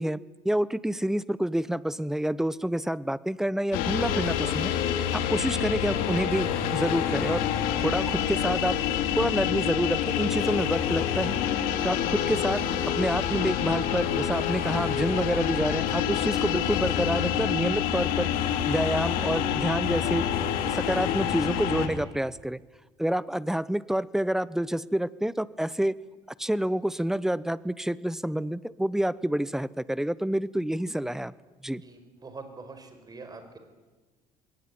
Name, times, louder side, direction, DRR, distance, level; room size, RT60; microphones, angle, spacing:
voice 1, 0.0-7.4 7.8-8.8 9.2-11.4 11.8-18.3 18.7-20.2 20.6-22.6 23.0-25.9 26.4-31.3 31.6-31.8, right 1 dB, 5° right, 19 dB, 0.8 m, -28 dB
sound 1, 3.7-21.9, left 9 dB, 80° left, 2.6 m, -27 dB
voice 2, 31.8-33.4, right 4 dB, 25° right, 8 dB, 4.9 m, -44 dB
22.0 x 18.5 x 9.7 m, 1.2 s
supercardioid pair, 95°, 15 cm